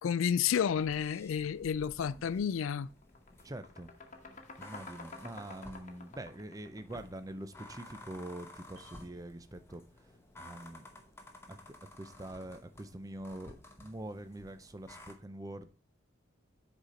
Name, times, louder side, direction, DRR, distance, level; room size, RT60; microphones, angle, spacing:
voice 1, 0.0-2.9, left 7 dB, 70° left, 0.3 m, -31 dB
sound 1, 0.7-15.1, left 1 dB, 10° left, 1.0 m, -54 dB
sound 2, 2.2-2.4 2.7-7.7, left 3 dB, 35° left, 1.2 m, -51 dB
voice 2, 3.4-3.9 4.6-10.1 10.4-11.0 11.5-15.7, right 1 dB, 15° right, 0.5 m, -45 dB
Piano, 8.8-10.2 10.5-10.7, equal, 75° right, 2.0 m, -66 dB
8.0 x 4.3 x 5.0 m
head